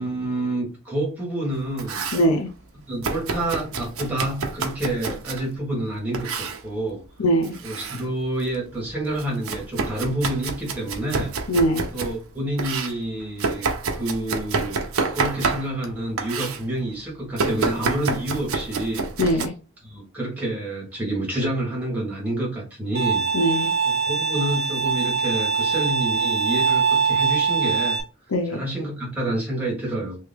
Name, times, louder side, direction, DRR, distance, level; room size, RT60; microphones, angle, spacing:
voice 1, 0.0-2.0 2.9-7.0 7.6-11.3 11.9-19.5 19.8-23.7 24.1-28.0 28.5-30.2, right 1 dB, 5° right, 1.5 m, -28 dB
Domestic sounds home sounds, 1.5-2.3 3.0-5.5 6.1-6.6 7.4-8.0 8.4-12.2 12.6-15.9 16.2-16.6 17.4-19.5, right 4 dB, 80° right, 0.6 m, -28 dB
voice 2, 2.1-2.5 7.2-7.6 11.5-11.9 19.2-19.5 23.3-23.7 28.3-28.6, equal, 85° left, 0.6 m, -21 dB
Bowed string instrument, 22.9-28.0, right 5 dB, 45° right, 1.1 m, -22 dB
3.2 x 2.8 x 3.5 m
head